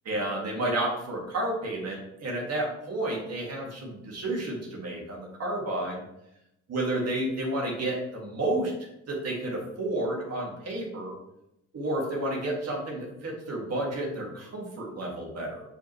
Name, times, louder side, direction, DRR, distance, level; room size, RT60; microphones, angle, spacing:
voice 1, 0.1-6.0 6.7-8.7 9.1-11.1 11.7-15.6, right 1 dB, 55° right, -2 dB, 2.2 m, -31 dB
7.6 x 5.1 x 3.3 m, 0.85 s
cardioid pair, 90°, 30 cm